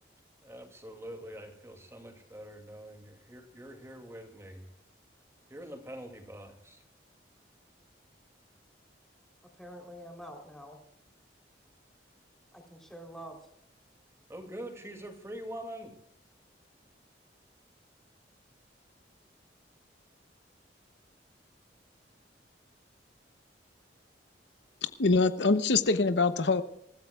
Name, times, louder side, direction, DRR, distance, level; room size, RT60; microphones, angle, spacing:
voice 1, 0.4-4.7 5.5-6.8 14.3-16.0, right 1 dB, 15° right, 4 dB, 2.5 m, -44 dB
voice 2, 9.6-10.8 12.5-13.4, equal, 5° left, 1 dB, 3.4 m, -46 dB
voice 3, 25.0-26.6, left 3 dB, 75° left, 12 dB, 0.8 m, -24 dB
27.5 x 15.0 x 2.3 m, 0.78 s
head